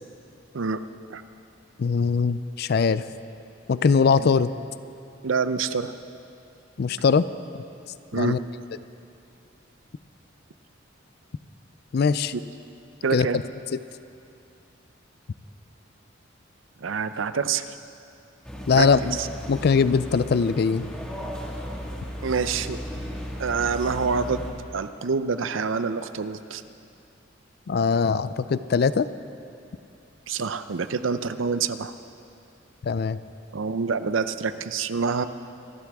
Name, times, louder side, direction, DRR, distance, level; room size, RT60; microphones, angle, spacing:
voice 1, 1.8-3.0 3.7-4.5 6.8-7.3 8.1-8.4 11.9-12.3 13.1-13.3 18.7-19.2 19.5-20.9 27.7-29.1 32.8-33.2, left 5 dB, 55° left, 15 dB, 0.4 m, -21 dB
voice 2, 5.2-5.9 8.1-8.4 12.3-12.4 13.0-13.4 16.8-17.7 18.7-19.3 22.2-22.8 23.4-24.5 24.7-26.6 30.3-31.9 33.5-35.3, right 5 dB, 80° right, 12 dB, 0.6 m, -26 dB
sound 1, 18.4-24.5, equal, 5° left, 1.7 m, -35 dB
25.0 x 12.5 x 3.5 m, 2.6 s
head